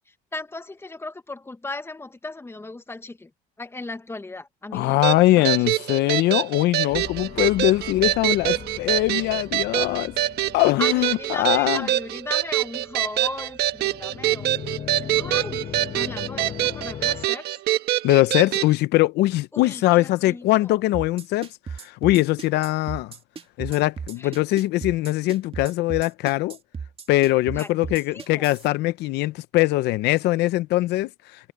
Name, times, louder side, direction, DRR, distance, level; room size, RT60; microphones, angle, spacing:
voice 1, 0.1-3.3 3.6-5.6 9.0-9.2 10.8-17.6 19.5-20.8 24.2-24.3 27.5-28.5, left 2 dB, 15° left, 1.4 m, -37 dB
voice 2, 4.7-10.1 10.5-11.9 18.0-23.1 23.6-26.6 27.1-31.5, left 17 dB, 85° left, 0.7 m, -22 dB
sound 1, 5.0-18.7, right 14 dB, 75° right, 1.4 m, -25 dB
sound 2, 6.9-17.3, left 9 dB, 45° left, 1.2 m, -39 dB
sound 3, 20.9-28.7, right 6 dB, 35° right, 2.1 m, -35 dB
cardioid pair, 110°, 17 cm